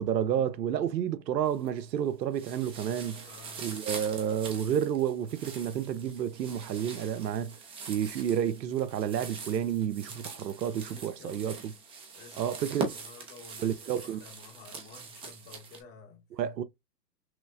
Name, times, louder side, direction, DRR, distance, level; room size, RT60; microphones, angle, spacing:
voice 1, 0.0-3.3 3.6-7.6 7.9-11.6 12.4-12.9 13.6-14.2 16.4-16.6, right 9 dB, 80° right, 0.7 m, -30 dB
sound 1, 1.4-2.0 2.3-15.8, right 4 dB, 10° right, 0.6 m, -43 dB
voice 2, 3.1-3.8 10.9-11.8 12.1-16.2, left 3 dB, 20° left, 0.9 m, -51 dB
6.0 x 2.0 x 2.4 m
hypercardioid pair, 125°, 50 cm